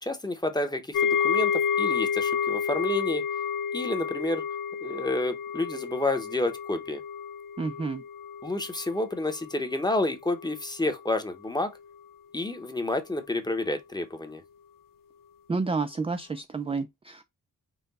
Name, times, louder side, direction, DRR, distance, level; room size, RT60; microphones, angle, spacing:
voice 1, 0.0-3.2 3.7-4.4 4.8-7.0 8.4-11.7 12.3-14.4, left 2 dB, 10° left, 0.8 m, -29 dB
sound 1, 0.9-10.0 10.3-10.6 11.0-11.1, left 7 dB, 70° left, 0.5 m, -30 dB
voice 2, 7.6-8.0 15.5-17.2, right 4 dB, 15° right, 0.3 m, -30 dB
5.7 x 2.2 x 4.0 m
wide cardioid pair, 110°, 34 cm